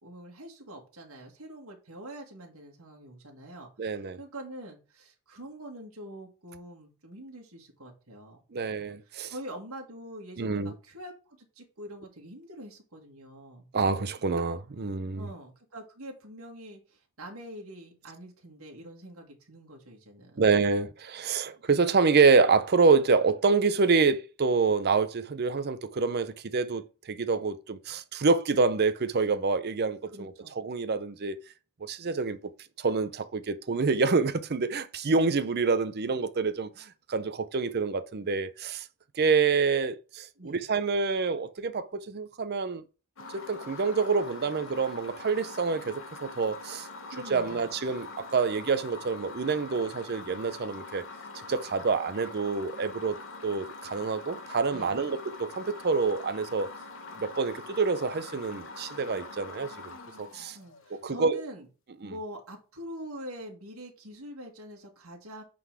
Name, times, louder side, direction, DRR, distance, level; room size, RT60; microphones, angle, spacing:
voice 1, 0.0-8.8 9.1-13.7 15.1-20.4 30.1-30.5 40.4-40.6 47.1-47.7 54.7-55.1 60.5-61.7 62.0-65.4, right 1 dB, 70° right, 2.0 m, -44 dB
voice 2, 3.8-4.2 8.5-9.3 10.4-10.7 13.7-15.3 20.4-31.4 31.8-32.4 32.8-38.8 39.1-42.8 43.3-46.9 47.3-51.0 51.5-53.2 53.4-56.7 57.2-59.7 60.2-60.6 60.9-61.4 62.0-62.1, right 4 dB, 45° right, 0.6 m, -27 dB
sound 1, 43.2-61.1, left 3 dB, 60° left, 1.2 m, -44 dB
8.3 x 4.0 x 4.7 m
head